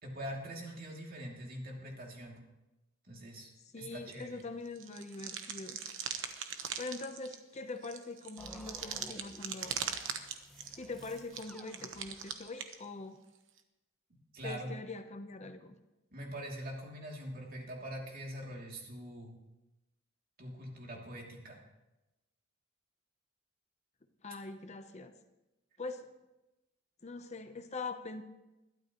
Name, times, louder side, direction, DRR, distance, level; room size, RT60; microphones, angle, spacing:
voice 1, 0.0-2.4 3.1-4.4 14.3-14.8 16.1-19.3 20.4-21.6, equal, 45° right, -1 dB, 2.7 m, -43 dB
voice 2, 3.7-5.8 6.8-9.8 10.7-13.2 14.4-15.7 24.2-25.1 25.8-26.1 27.0-28.2, left 3 dB, 35° left, 8 dB, 0.8 m, -43 dB
sound 1, 4.1-4.4 4.7-12.8 13.6-13.7, right 7 dB, 65° right, 1.1 m, -41 dB
sound 2, 8.4-12.5, equal, ahead, 0.8 m, -55 dB
21.5 x 12.5 x 3.0 m, 1.0 s
head